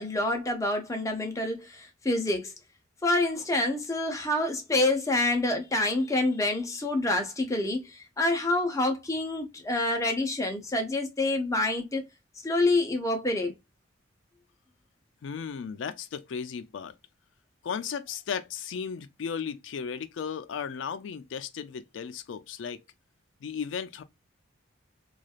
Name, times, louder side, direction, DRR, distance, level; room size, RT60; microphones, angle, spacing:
voice 1, 0.0-2.5 3.0-12.0 12.4-13.5, left 2 dB, 15° left, 0.6 m, -27 dB
voice 2, 15.2-16.9 17.6-22.8 23.4-24.0, left 6 dB, 70° left, 0.4 m, -35 dB
3.1 x 2.4 x 2.3 m
head